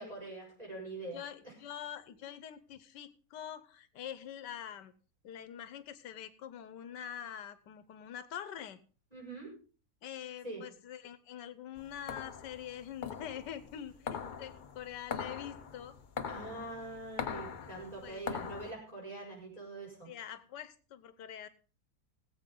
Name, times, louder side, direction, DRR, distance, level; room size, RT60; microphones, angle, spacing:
voice 1, 0.0-1.5 9.1-9.5 10.4-10.6 16.3-20.1, right 2 dB, 20° right, -3 dB, 6.5 m, -44 dB
voice 2, 1.1-4.9 5.2-8.8 10.0-16.0 17.6-17.7 18.0-18.2 20.1-21.5, left 10 dB, 90° left, 14 dB, 1.5 m, -45 dB
sound 1, 11.8-18.7, left 6 dB, 50° left, 0.5 m, -42 dB
20.5 x 7.9 x 3.8 m, 0.38 s
omnidirectional pair, 1.8 m